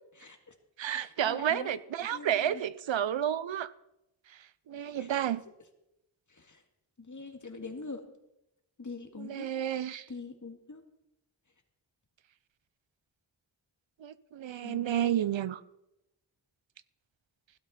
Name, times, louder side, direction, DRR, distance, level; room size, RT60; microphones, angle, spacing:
voice 1, 0.2-0.5 1.0-1.7 2.1-2.6 5.0-5.1 6.3-6.6 7.0-8.0 8.8-9.5 10.1-10.8 14.5-15.2, left 3 dB, 40° left, 5 dB, 2.0 m, -44 dB
voice 2, 0.8-3.7 4.7-5.4 9.2-10.0 14.0-15.6, right 10 dB, 90° right, 17 dB, 0.6 m, -31 dB
16.5 x 12.0 x 4.3 m, 0.86 s
wide cardioid pair, 70°, 45 cm